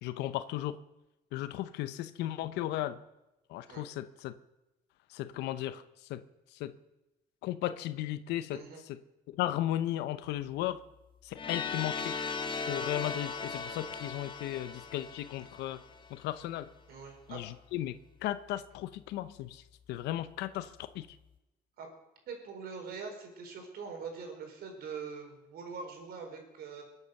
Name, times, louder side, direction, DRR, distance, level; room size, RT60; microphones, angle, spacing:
voice 1, 0.0-0.8 1.3-3.0 3.5-4.3 5.1-6.2 6.5-6.7 7.4-9.0 9.4-10.8 11.2-12.2 12.7-15.8 16.1-16.7 17.3-18.0 18.2-21.1, left 13 dB, 85° left, 12 dB, 0.8 m, -35 dB
voice 2, 8.5-8.8 16.9-17.4 21.8-21.9 22.3-26.8, right 5 dB, 65° right, 4 dB, 4.5 m, -43 dB
sound 1, 11.4-16.2, left 5 dB, 30° left, 1.6 m, -38 dB
22.0 x 8.5 x 6.5 m, 0.96 s
cardioid pair, 110°, 17 cm